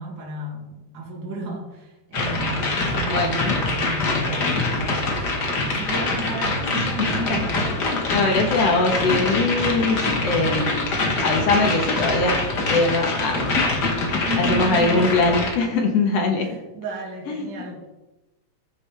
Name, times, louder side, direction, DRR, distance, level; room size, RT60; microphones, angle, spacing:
voice 1, 0.0-5.2 5.6-7.7 14.3-15.2 16.4-18.1, right 2 dB, 40° right, -2 dB, 2.8 m, -33 dB
sound 1, 2.1-15.6, left 2 dB, 45° left, 1.5 m, -24 dB
voice 2, 3.1-3.6 7.0-7.4 7.8-10.9 11.2-12.4 12.7-13.4 14.4-16.5 17.3-17.5, left 3 dB, 60° left, 3 dB, 2.1 m, -22 dB
14.5 x 9.4 x 3.4 m, 1.0 s
omnidirectional pair, 3.6 m